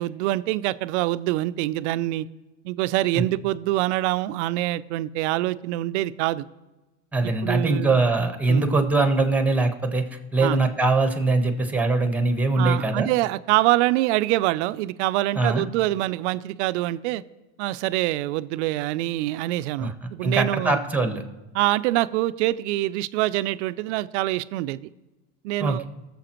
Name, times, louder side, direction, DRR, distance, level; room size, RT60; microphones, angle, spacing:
voice 1, 0.0-2.3 2.6-6.5 7.2-8.0 8.5-8.7 10.4-10.6 12.6-17.2 17.6-20.8 21.5-24.8 25.4-25.8, right 16 dB, 75° right, 16 dB, 0.5 m, -25 dB
voice 2, 7.1-13.1 15.3-15.6 19.8-19.9 20.2-21.2 25.6-25.8, right 3 dB, 5° right, 7 dB, 1.1 m, -22 dB
19.0 x 7.1 x 3.0 m, 1.1 s
supercardioid pair, 105°, 36 cm